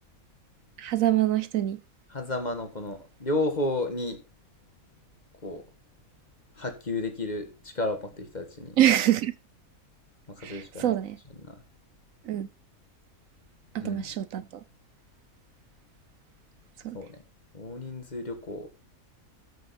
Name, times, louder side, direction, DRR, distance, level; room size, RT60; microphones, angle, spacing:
voice 1, 0.8-1.8 8.8-9.3 10.4-11.2 12.2-12.5 13.7-14.6 16.8-17.0, right 12 dB, 70° right, 1.0 m, -25 dB
voice 2, 2.1-4.2 5.4-5.6 6.6-8.8 10.3-11.0 11.4-11.6 13.8-14.1 16.9-17.2 17.5-18.7, left 2 dB, 30° left, 1.7 m, -32 dB
13.5 x 6.4 x 4.3 m
omnidirectional pair, 1.5 m